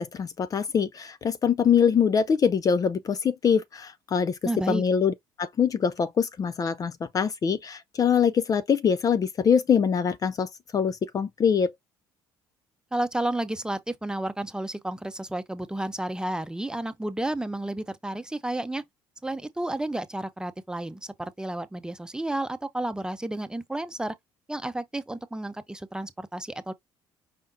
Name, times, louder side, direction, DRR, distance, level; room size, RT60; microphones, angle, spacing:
voice 1, 0.0-4.4 4.7-5.1 5.4-11.7, left 7 dB, 40° left, 0.5 m, -24 dB
voice 2, 4.4-4.8 12.9-18.8 19.2-24.1 24.5-26.7, right 1 dB, 10° right, 0.8 m, -31 dB
5.1 x 3.4 x 2.7 m
supercardioid pair, 70°, 9 cm